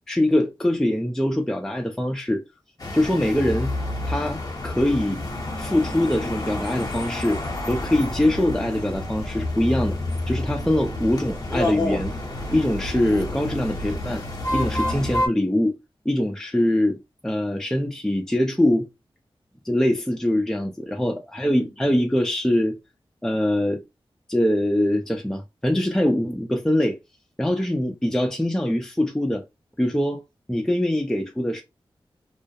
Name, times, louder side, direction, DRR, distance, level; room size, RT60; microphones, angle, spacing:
voice 1, 0.1-2.4 2.9-3.8 4.0-5.2 5.6-10.0 10.3-12.1 12.5-14.2 14.5-15.7 16.1-18.9 19.6-22.8 23.2-23.8 24.3-27.0 27.4-29.4 29.8-30.2 30.5-31.6, left 1 dB, 5° left, 0.4 m, -23 dB
sound 1, 2.8-15.3, left 1 dB, 40° left, 0.8 m, -29 dB
2.2 x 2.0 x 2.7 m
cardioid pair, 55°, 10 cm